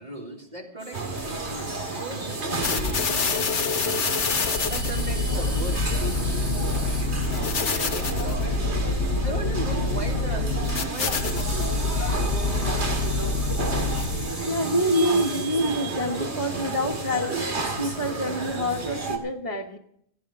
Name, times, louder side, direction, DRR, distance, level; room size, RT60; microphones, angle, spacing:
voice 1, 0.0-4.0 4.6-7.2 7.6-8.5 9.2-10.5 10.9-12.8, right 2 dB, 40° right, -1 dB, 2.9 m, -38 dB
sound 1, 0.8-18.9, right 2 dB, 60° right, 5.8 m, -41 dB
sound 2, 0.9-19.2, right 3 dB, 75° right, 2.4 m, -32 dB
sound 3, 2.6-14.4, left 3 dB, 90° left, 1.5 m, -26 dB
voice 2, 4.3-4.7 5.3-5.6 6.1-6.4 8.1-9.6 9.8-10.7 11.7-13.3 13.7-17.4 17.8-19.8, equal, 30° left, -3 dB, 1.4 m, -29 dB
17.5 x 16.0 x 3.7 m, 0.69 s
omnidirectional pair, 1.1 m